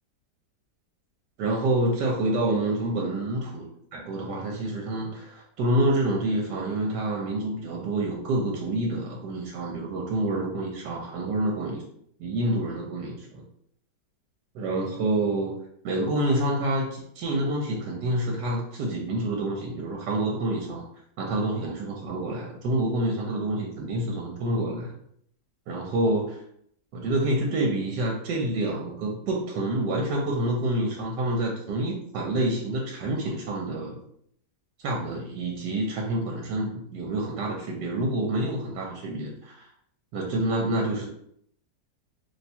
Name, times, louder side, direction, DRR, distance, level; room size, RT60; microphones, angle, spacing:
voice 1, 1.4-11.8 12.2-13.4 14.5-15.5 15.8-20.8 21.2-24.9 25.7-26.4 26.9-34.0 34.8-39.7 40.1-41.1, right 1 dB, 75° right, 0 dB, 1.2 m, -27 dB
3.0 x 2.2 x 4.1 m, 0.69 s
omnidirectional pair, 1.9 m